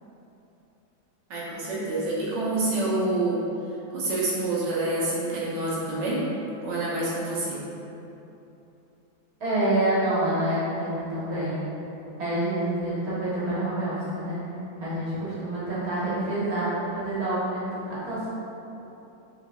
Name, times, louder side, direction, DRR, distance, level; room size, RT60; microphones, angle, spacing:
voice 1, 1.3-3.4 3.9-6.3 6.6-7.6, right 2 dB, 70° right, -7 dB, 1.6 m, -27 dB
voice 2, 9.4-11.6 12.2-14.4 14.8-18.3, right 1 dB, 55° right, -10 dB, 1.8 m, -27 dB
5.2 x 4.0 x 2.5 m, 3.0 s
omnidirectional pair, 2.0 m